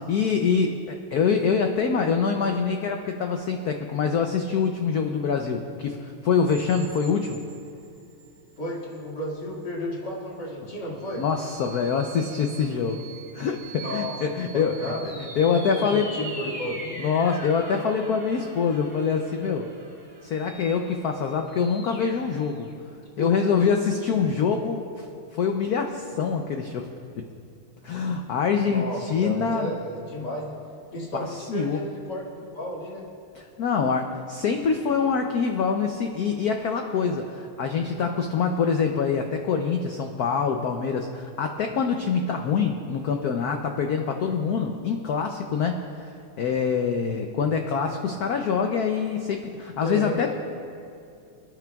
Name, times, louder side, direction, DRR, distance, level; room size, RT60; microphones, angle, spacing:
voice 1, 0.0-7.4 11.1-13.0 13.3-16.1 16.7-19.7 20.2-22.7 23.2-25.1 25.3-26.9 27.8-29.7 31.1-31.8 33.3-46.1 46.4-50.3, left 6 dB, 90° left, 4 dB, 0.8 m, -25 dB
sound 1, 6.4-8.4 8.9-9.0 11.0-22.7, right 2 dB, 5° left, 1.4 m, -42 dB
voice 2, 8.6-11.2 13.8-17.0 23.2-23.5 28.6-30.6 30.9-33.1 49.8-50.3, equal, 50° left, -5 dB, 2.6 m, -33 dB
27.0 x 9.7 x 2.3 m, 2.5 s
omnidirectional pair, 2.4 m